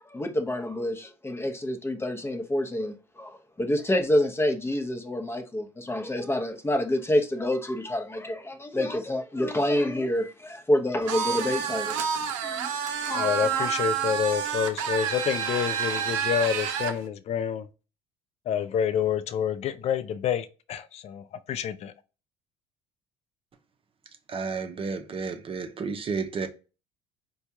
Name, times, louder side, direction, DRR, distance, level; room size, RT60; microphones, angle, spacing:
voice 1, 0.1-11.9 12.4-12.7 13.1-13.8, left 1 dB, 15° left, 0.8 m, -28 dB
sound 1, 11.1-17.0, right 7 dB, 80° right, 0.5 m, -29 dB
voice 2, 13.2-17.6 18.5-21.2 21.5-21.9, left 8 dB, 40° left, 0.4 m, -28 dB
voice 3, 24.3-26.5, right 5 dB, 35° right, 0.7 m, -31 dB
4.3 x 2.3 x 2.7 m
hypercardioid pair, 70°, 16 cm